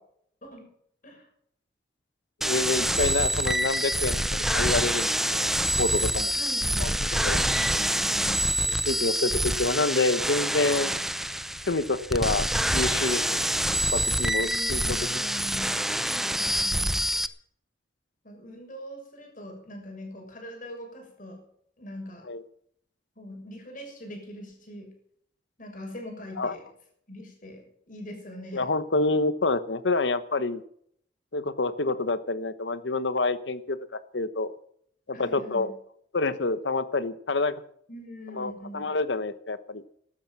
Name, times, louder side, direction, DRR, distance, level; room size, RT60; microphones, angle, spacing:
voice 1, 2.4-4.2 4.5-5.5 5.8-6.3 6.8-7.4 8.8-10.9 11.7-13.5 13.9-15.3 22.3-22.4 26.4-26.5 28.5-30.6 31.3-34.5 35.1-35.7 36.1-37.6 38.3-39.8, left 3 dB, 90° left, 14 dB, 1.1 m, -27 dB
sound 1, 2.4-17.3, right 1 dB, ahead, 0.6 m, -26 dB
voice 2, 6.3-7.0 7.3-8.6 14.4-15.7 16.0-17.0 18.2-21.4 21.8-22.3 23.2-24.9 25.6-26.6 27.1-28.7 35.1-35.7 37.9-38.9, equal, 50° left, 2 dB, 6.6 m, -42 dB
14.5 x 12.5 x 6.0 m, 0.66 s
head